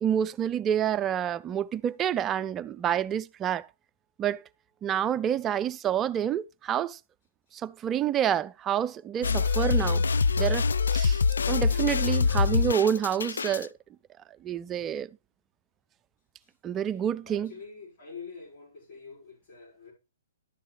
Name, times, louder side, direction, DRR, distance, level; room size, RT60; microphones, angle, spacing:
voice 1, 0.0-3.7 4.2-4.4 4.8-7.0 7.6-10.0 10.4-10.7 10.9-13.7 14.4-15.1 16.6-17.5, right 9 dB, 20° right, 0.4 m, -28 dB
sound 1, 9.2-13.7, left 5 dB, 85° left, 0.4 m, -25 dB
voice 2, 17.2-19.9, left 5 dB, 50° left, 5.1 m, -46 dB
11.0 x 6.5 x 3.2 m
hypercardioid pair, 140°, 0 cm